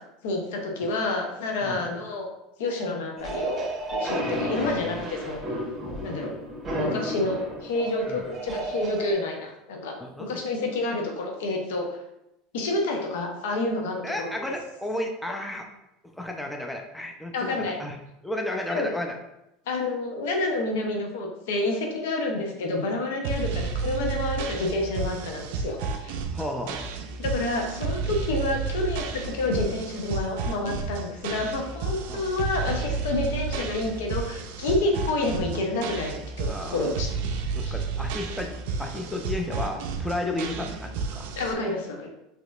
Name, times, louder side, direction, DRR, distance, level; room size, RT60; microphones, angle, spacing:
voice 1, 0.2-2.3 2.6-5.4 6.0-6.3 6.8-9.9 10.2-11.9 12.5-14.3 17.3-17.8 18.7-18.9 19.7-26.2 27.2-37.1 37.6-37.8 41.4-42.1, left 2 dB, 80° left, 2 dB, 0.7 m, -29 dB
sound 1, 3.2-9.1, right 1 dB, 25° right, 1.1 m, -32 dB
voice 2, 4.2-5.0 8.1-8.2 10.0-10.4 14.0-15.7 16.2-18.0 18.2-19.2 26.3-26.9 32.1-32.2 34.9-35.0 36.5-37.0 37.5-41.3, left 1 dB, 5° left, 2 dB, 0.5 m, -33 dB
sound 2, 23.2-41.5, right 5 dB, 75° right, 0.4 m, -31 dB
4.1 x 2.9 x 2.4 m, 0.87 s
supercardioid pair, 105°, 0 cm